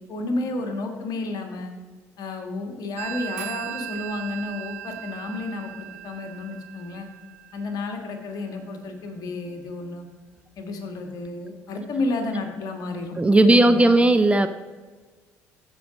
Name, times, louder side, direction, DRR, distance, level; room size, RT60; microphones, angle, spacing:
voice 1, 0.1-1.7 2.2-7.1 7.5-10.1 10.6-14.0, left 2 dB, 55° left, 4 dB, 1.6 m, -31 dB
Telephone, 3.0-8.3, right 12 dB, 80° right, 0.5 m, -38 dB
voice 2, 13.2-14.5, right 2 dB, 15° right, 9 dB, 0.6 m, -16 dB
14.0 x 4.9 x 5.1 m, 1.4 s
hypercardioid pair, 50°, 8 cm